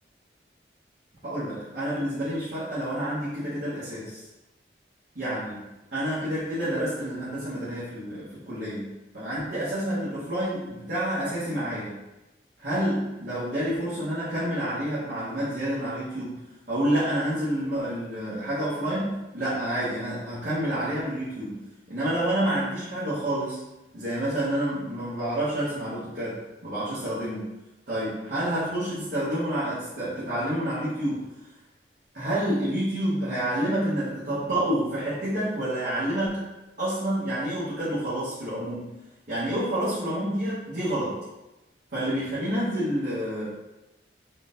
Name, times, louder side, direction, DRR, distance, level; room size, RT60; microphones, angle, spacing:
voice 1, 1.2-4.3 5.1-12.0 12.6-16.4 16.7-21.6 21.9-23.6 23.9-27.5 27.9-31.3 32.1-36.5 36.8-38.9 39.3-41.2 41.9-43.6, right 1 dB, 60° right, -12 dB, 1.2 m, -28 dB
3.8 x 3.2 x 2.6 m, 1.0 s
head